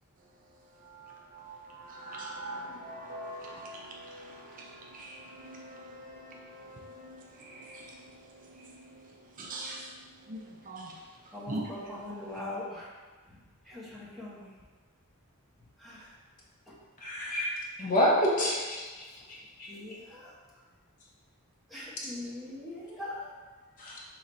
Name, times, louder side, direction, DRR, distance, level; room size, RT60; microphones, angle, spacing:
voice 1, 1.3-7.9 8.8-9.0 9.4-9.9 10.3-10.9 11.5-11.6, right 1 dB, 35° right, -1 dB, 0.5 m, -42 dB
voice 2, 11.3-12.9 13.3-13.4 13.6-14.5 15.8-16.1 16.7-16.8 19.7-20.3 21.7-23.3, left 2 dB, ahead, -7 dB, 0.9 m, -41 dB
voice 3, 17.0-17.5 17.8-18.8 19.3-19.7 23.8-24.0, equal, 35° left, -4 dB, 0.8 m, -27 dB
3.9 x 3.0 x 4.1 m, 1.4 s
head